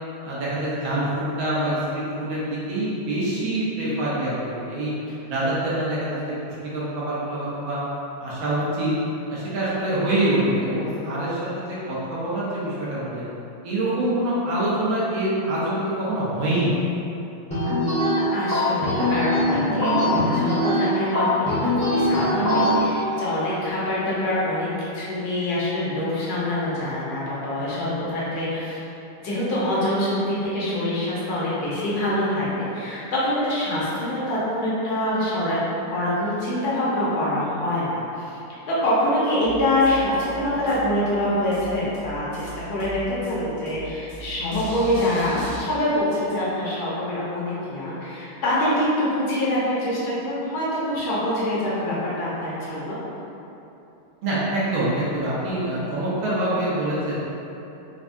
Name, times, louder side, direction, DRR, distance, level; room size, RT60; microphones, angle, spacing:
voice 1, 0.2-4.9 5.3-7.8 8.2-8.9 9.3-13.2 13.6-16.7 54.2-57.1, right 1 dB, 70° right, -8 dB, 1.6 m, -25 dB
sound 1, 17.5-22.8, left 1 dB, 5° left, 0.5 m, -22 dB
voice 2, 18.3-28.8 29.2-32.5 32.7-35.6 35.9-38.4 38.7-53.0, left 1 dB, 60° left, -8 dB, 1.1 m, -25 dB
sound 2, 39.4-45.6, right 2 dB, 85° left, 1.7 m, -38 dB
4.5 x 2.3 x 2.6 m, 2.9 s
omnidirectional pair, 2.3 m